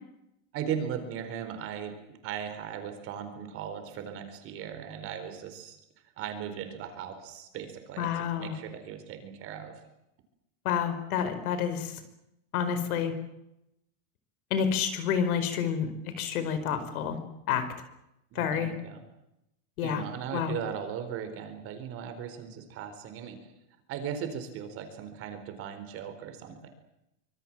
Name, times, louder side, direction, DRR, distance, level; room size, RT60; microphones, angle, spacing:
voice 1, 0.5-5.8 6.2-9.7 18.3-19.0 19.8-23.5 23.9-26.7, right 8 dB, 30° right, 8 dB, 4.4 m, -38 dB
voice 2, 8.0-8.5 10.6-12.0 12.5-13.1 14.5-17.2 17.5-17.7 18.3-18.7 19.8-20.0 20.3-20.5, left 8 dB, 85° left, 10 dB, 5.1 m, -29 dB
25.5 x 23.5 x 7.6 m, 0.85 s
supercardioid pair, 180°, 42 cm